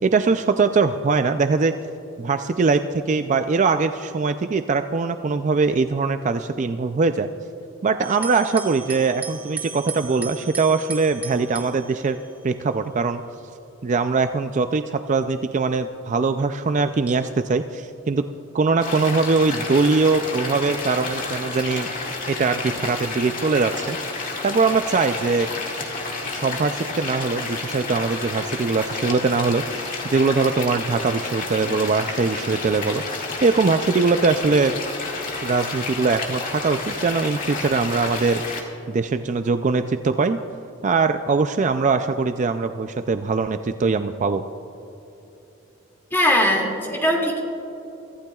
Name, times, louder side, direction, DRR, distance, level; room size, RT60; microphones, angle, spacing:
voice 1, 0.0-1.7 2.2-7.3 7.8-12.2 12.4-13.2 13.8-18.2 18.5-21.9 22.3-25.5 26.3-33.0 33.4-34.8 35.4-40.4 40.8-44.4, right 4 dB, 40° right, 9 dB, 0.4 m, -22 dB
sound 1, 8.0-12.7 13.6-14.1 14.7-14.8 17.1-17.5, right 6 dB, 10° right, 1.2 m, -36 dB
sound 2, 18.8-38.6, left 3 dB, 45° left, 2.0 m, -30 dB
voice 2, 46.1-47.4, left 1 dB, 10° left, -1 dB, 2.3 m, -20 dB
24.0 x 15.0 x 2.3 m, 3.0 s
head